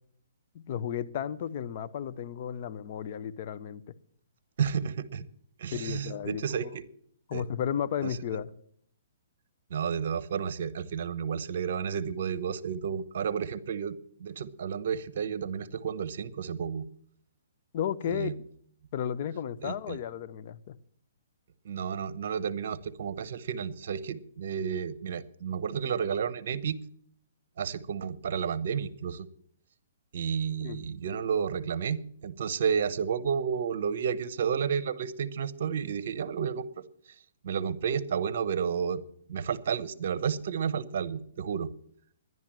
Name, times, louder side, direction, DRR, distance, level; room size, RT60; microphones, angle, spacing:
voice 1, 0.5-3.9 5.7-6.7 7.3-8.5 17.7-18.3 18.9-20.8 30.6-30.8, left 9 dB, 45° left, 13 dB, 0.7 m, -33 dB
voice 2, 4.6-5.3 5.6-6.8 7.3-7.4 9.7-16.9 18.1-18.3 19.6-20.0 21.6-26.8 27.6-29.3 30.1-36.7 37.4-39.0 39.3-41.7, right 7 dB, 60° right, 16 dB, 0.9 m, -31 dB
11.0 x 11.0 x 7.4 m, 0.64 s
hypercardioid pair, 145°, 0 cm